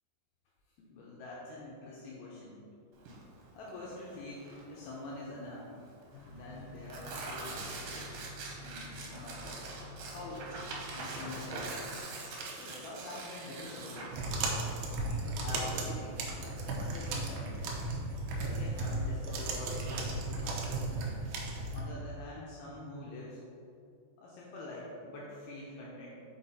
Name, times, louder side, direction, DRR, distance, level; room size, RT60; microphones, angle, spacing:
voice 1, 0.8-2.6 3.5-5.9 6.2-8.1 8.6-9.6 10.1-10.6 10.9-11.8 12.3-14.2 14.6-17.6 18.3-21.2 21.7-23.4 24.2-26.2, left 2 dB, 90° left, -5 dB, 2.3 m, -46 dB
Tearing, 3.0-17.2, right 3 dB, 75° right, 2.6 m, -44 dB
sound 1, 6.1-12.0, left 2 dB, 70° left, 2.5 m, -49 dB
sound 2, 14.1-21.8, right 2 dB, 90° right, 2.2 m, -35 dB
6.6 x 5.1 x 4.2 m, 2.5 s
omnidirectional pair, 5.6 m